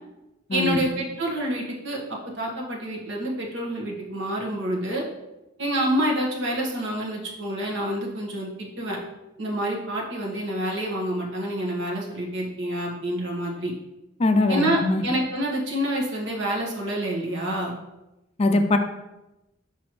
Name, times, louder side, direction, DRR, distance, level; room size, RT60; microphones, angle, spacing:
voice 1, 0.5-2.0 2.3-5.0 5.6-9.0 9.4-13.7 14.5-17.7, right 1 dB, 70° right, -2 dB, 1.4 m, -27 dB
voice 2, 14.2-15.0 18.4-18.8, left 2 dB, 35° left, 7 dB, 0.4 m, -21 dB
6.0 x 5.6 x 3.1 m, 0.97 s
head